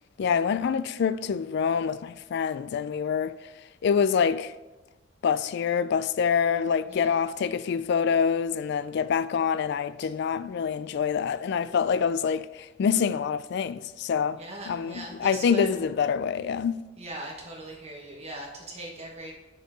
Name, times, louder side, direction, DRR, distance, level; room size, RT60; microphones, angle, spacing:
voice 1, 0.2-3.4 3.8-4.5 5.2-14.4 14.7-16.8, left 6 dB, 60° left, 0.3 m, -26 dB
voice 2, 14.3-15.8 17.0-19.3, right 1 dB, 35° right, 1.1 m, -40 dB
6.5 x 4.5 x 6.0 m
head